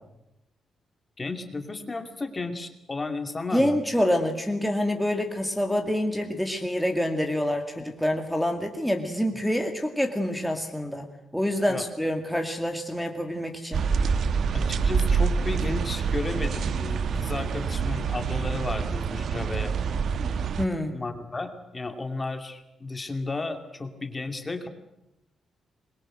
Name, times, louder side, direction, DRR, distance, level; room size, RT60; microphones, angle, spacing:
voice 1, 1.2-3.8 11.7-11.9 14.5-19.8 20.9-24.7, left 3 dB, 20° left, 7 dB, 2.4 m, -33 dB
voice 2, 3.5-11.1 11.3-13.9 20.6-21.0, left 1 dB, ahead, 3 dB, 2.2 m, -27 dB
sound 1, 13.7-20.7, right 5 dB, 60° right, 1.1 m, -26 dB
26.0 x 22.0 x 7.8 m, 0.87 s
cardioid pair, 140°, 0 cm